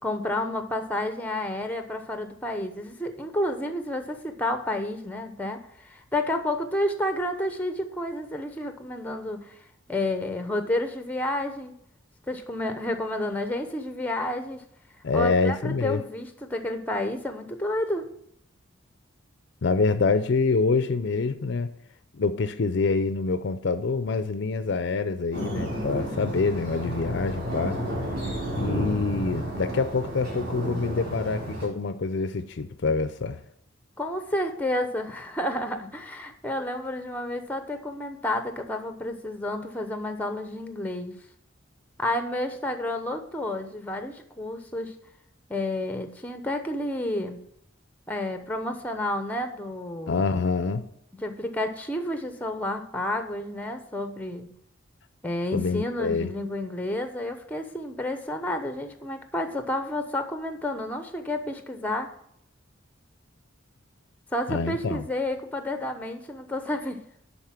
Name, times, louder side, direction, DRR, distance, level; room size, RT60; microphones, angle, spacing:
voice 1, 0.0-9.6 9.9-11.7 12.3-14.6 15.1-18.1 34.0-41.1 42.0-45.0 45.5-47.4 48.1-50.2 51.2-54.5 55.2-62.1 64.3-67.0, left 1 dB, 10° left, 0.8 m, -30 dB
voice 2, 15.0-16.0 19.6-21.7 22.1-27.8 28.6-33.4 50.1-50.8 55.5-56.3 64.5-65.0, left 4 dB, 60° left, 0.5 m, -26 dB
sound 1, 25.3-31.7, equal, 45° right, 3.6 m, -32 dB
10.5 x 4.2 x 5.8 m
head